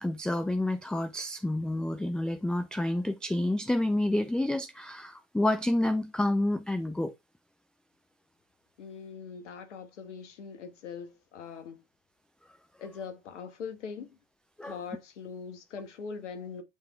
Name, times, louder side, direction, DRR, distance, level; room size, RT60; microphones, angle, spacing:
voice 1, 0.0-7.1 14.6-14.8, left 1 dB, ahead, 0.4 m, -29 dB
voice 2, 8.8-11.8 12.8-14.1 14.6-16.6, left 6 dB, 75° left, 1.3 m, -41 dB
7.9 x 3.4 x 3.5 m
hypercardioid pair, 80°, 36 cm